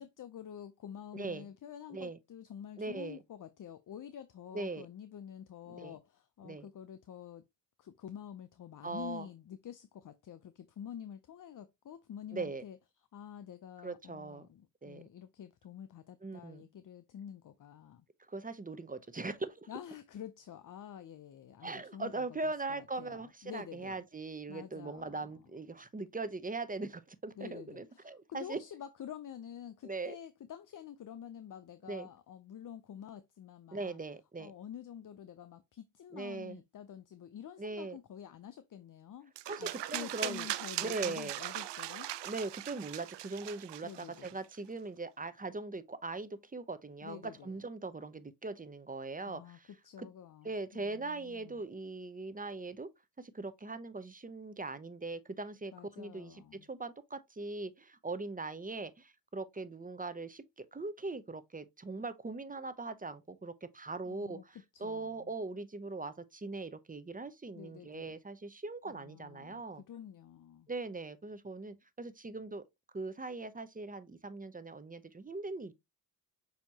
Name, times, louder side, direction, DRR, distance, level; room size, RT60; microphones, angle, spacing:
voice 1, 0.0-7.5 7.8-12.8 13.1-18.0 19.7-24.0 24.5-25.3 27.4-34.0 34.4-39.3 39.6-42.1 43.8-44.4 47.0-47.6 49.3-51.6 55.7-56.7 64.0-64.4 64.7-65.3 67.5-68.2 68.9-69.6 69.9-70.7, left 9 dB, 45° left, 0.5 m, -48 dB
voice 2, 1.1-1.5 1.9-2.2 2.8-3.2 4.5-4.9 5.7-6.0 6.4-6.7 8.8-9.3 12.3-12.6 13.8-14.5 14.8-15.0 16.2-16.6 18.3-19.7 21.6-28.6 29.8-30.2 31.9-32.1 33.7-34.5 36.1-36.6 37.6-38.0 39.5-40.5 40.8-41.4 42.2-49.7 50.0-50.1 50.4-52.9 53.2-69.8 70.7-72.6 72.9-75.7, right 3 dB, 20° right, 0.6 m, -40 dB
sound 1, 39.4-44.5, right 14 dB, 70° right, 0.5 m, -40 dB
6.7 x 2.9 x 2.8 m
cardioid pair, 65°, 43 cm